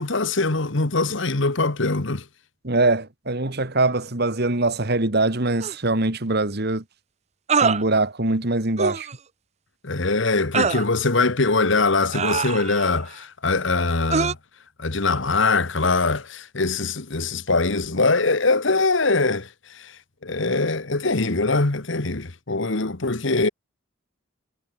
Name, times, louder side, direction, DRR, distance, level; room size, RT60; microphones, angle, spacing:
voice 1, 0.0-2.2 9.8-14.4 14.8-19.5 19.7-19.9 20.2-23.5, left 3 dB, 60° left, 1.5 m, -22 dB
voice 2, 2.6-6.8 7.6-9.1, right 2 dB, 50° right, 2.0 m, -22 dB
sound 1, 5.6-5.7 7.5-7.8 8.8-9.1 10.5-10.9 12.1-12.9 14.1-14.3, right 5 dB, 30° right, 0.7 m, -23 dB
head